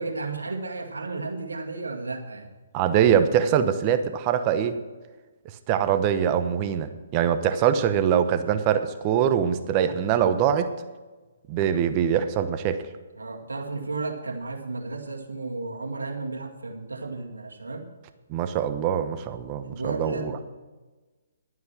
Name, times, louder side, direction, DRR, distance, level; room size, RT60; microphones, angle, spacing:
voice 1, 0.0-2.5 13.2-17.9 19.6-20.4, right 3 dB, 80° right, 2 dB, 2.1 m, -33 dB
voice 2, 2.7-4.8 5.7-10.7 11.5-12.8 18.3-20.3, right 9 dB, 30° right, 10 dB, 0.9 m, -23 dB
11.5 x 9.5 x 6.2 m, 1.3 s
figure-of-eight pair, 135°, 0 cm